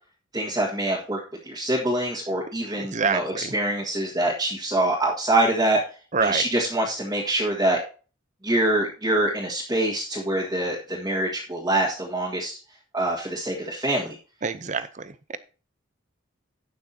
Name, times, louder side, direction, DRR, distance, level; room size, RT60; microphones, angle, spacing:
voice 1, 0.3-1.2 1.5-5.8 6.2-7.8 8.4-12.5 12.9-14.1, right 1 dB, 20° right, -5 dB, 1.8 m, -25 dB
voice 2, 2.6-3.5 6.1-6.5 14.4-15.4, right 5 dB, 35° right, 13 dB, 0.6 m, -27 dB
17.5 x 6.1 x 2.8 m, 0.36 s
head